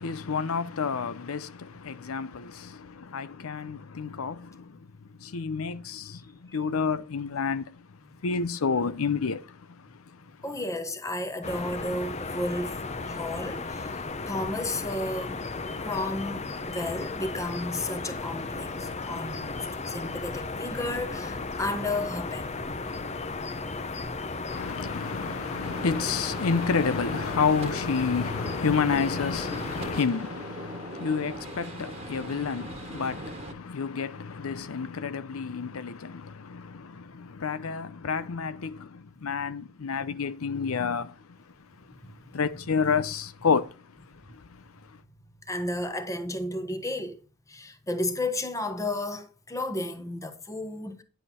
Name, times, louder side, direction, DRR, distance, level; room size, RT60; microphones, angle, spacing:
voice 1, 0.0-4.8 5.2-7.7 8.2-10.2 24.5-41.2 42.0-43.7 44.3-44.6, left 5 dB, 80° left, 0.6 m, -30 dB
voice 2, 6.1-6.6 10.4-15.4 15.8-22.5 23.9-24.1 42.0-42.4 45.5-47.2 47.5-51.0, left 1 dB, 15° left, 1.2 m, -33 dB
sound 1, 11.4-30.0, left 3 dB, 30° left, 0.7 m, -35 dB
Gunshot gunfire, 25.6-33.5, right 2 dB, 30° right, 1.4 m, -40 dB
10.0 x 7.8 x 4.3 m
head